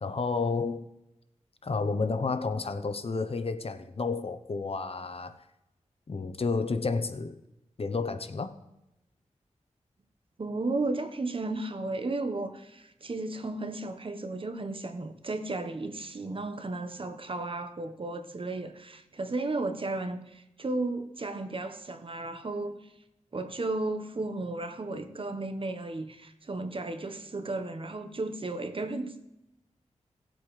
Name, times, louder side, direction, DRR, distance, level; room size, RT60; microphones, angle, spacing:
voice 1, 0.0-0.9 1.6-5.4 6.1-7.4 7.8-8.5, left 4 dB, 50° left, 0.8 m, -31 dB
voice 2, 10.4-22.8 23.3-29.3, right 2 dB, 45° right, 1.1 m, -34 dB
18.0 x 8.0 x 3.2 m
wide cardioid pair, 70°, 13 cm